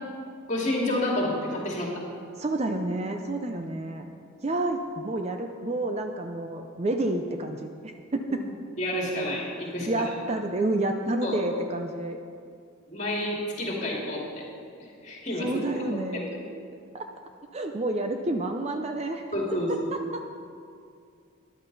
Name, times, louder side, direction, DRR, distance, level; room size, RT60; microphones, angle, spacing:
voice 1, 0.5-2.0 8.8-10.0 11.2-11.4 12.9-14.5 14.8-15.6 16.1-16.4 19.3-19.7, left 1 dB, 35° left, -2 dB, 2.4 m, -29 dB
voice 2, 2.4-4.1 4.4-8.4 9.9-12.2 15.4-16.3 16.9-17.0 17.5-19.2 19.7-20.3, right 2 dB, 30° right, 5 dB, 0.5 m, -29 dB
14.0 x 11.0 x 4.0 m, 2.4 s
head